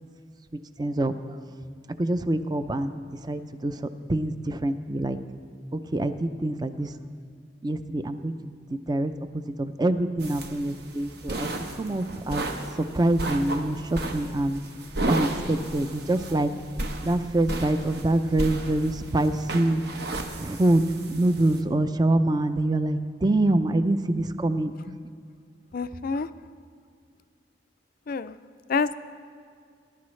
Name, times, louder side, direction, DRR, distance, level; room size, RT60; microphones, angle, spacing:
voice 1, 0.8-1.1 2.0-3.8 4.1-5.2 5.7-6.9 7.6-11.5 11.7-12.5 12.9-14.6 15.1-16.5 17.0-19.8 20.4-24.7, right 1 dB, 20° right, 11 dB, 0.5 m, -25 dB
sound 1, 10.2-21.6, right 2 dB, 60° right, 1.0 m, -34 dB
voice 2, 25.7-26.3 28.1-28.4 28.7-28.9, left 5 dB, 50° left, 13 dB, 0.4 m, -27 dB
21.0 x 11.5 x 3.2 m, 2.2 s
head